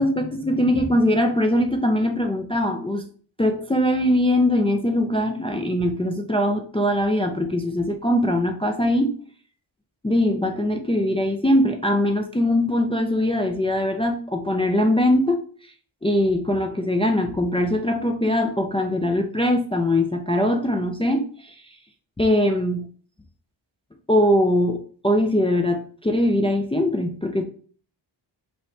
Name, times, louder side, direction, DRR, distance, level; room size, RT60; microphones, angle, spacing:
voice 1, 0.0-3.0 3.4-9.1 10.0-15.4 16.0-21.5 22.2-22.8 24.1-24.8 25.0-27.4, left 1 dB, 15° left, 4 dB, 0.3 m, -21 dB
5.3 x 2.9 x 3.2 m, 0.43 s
wide cardioid pair, 160°, 48 cm